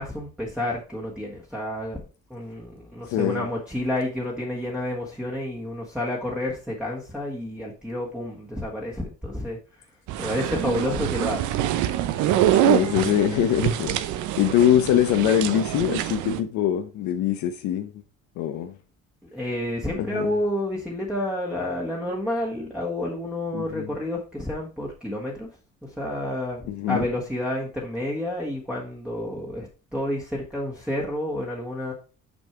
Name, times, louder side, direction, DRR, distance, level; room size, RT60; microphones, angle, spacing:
voice 1, 0.0-2.0 2.3-9.8 10.2-11.6 19.2-25.5 25.8-31.9, left 1 dB, 5° right, 1.4 m, -30 dB
voice 2, 3.1-3.5 12.6-17.9 18.4-18.7 20.0-20.4 23.5-23.9 26.7-27.1, left 10 dB, 85° left, 0.8 m, -23 dB
sound 1, 10.1-16.4, right 12 dB, 90° right, 0.7 m, -25 dB
6.2 x 5.4 x 4.5 m
cardioid pair, 130°, 29 cm